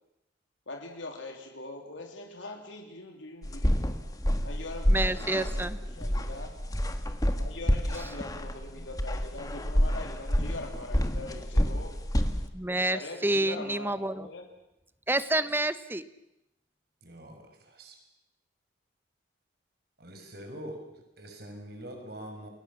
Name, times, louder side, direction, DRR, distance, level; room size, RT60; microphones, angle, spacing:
voice 1, 0.7-3.8 4.4-6.5 7.4-12.0 12.9-14.5, left 2 dB, 85° left, 3 dB, 3.2 m, -42 dB
sound 1, 3.4-12.5, equal, 20° left, 1.7 m, -28 dB
voice 2, 4.9-5.8 12.5-14.3 15.1-16.0, right 1 dB, 10° right, 13 dB, 1.0 m, -28 dB
voice 3, 17.0-18.0 20.0-20.8 21.2-22.5, right 1 dB, 55° right, 4 dB, 5.8 m, -44 dB
29.0 x 21.5 x 7.3 m, 0.87 s
head